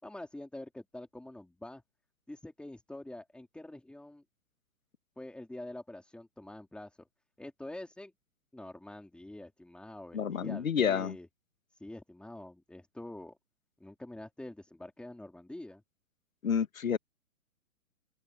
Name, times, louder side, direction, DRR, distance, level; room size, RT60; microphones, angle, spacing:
voice 1, 0.0-1.8 2.3-4.2 5.2-7.1 7.4-8.1 8.5-11.3 11.7-13.4 13.8-15.8, left 1 dB, ahead, 4.2 m, -46 dB
voice 2, 10.1-11.1 16.4-17.0, left 7 dB, 65° left, 1.7 m, -29 dB
open air
figure-of-eight pair, 125°, 43 cm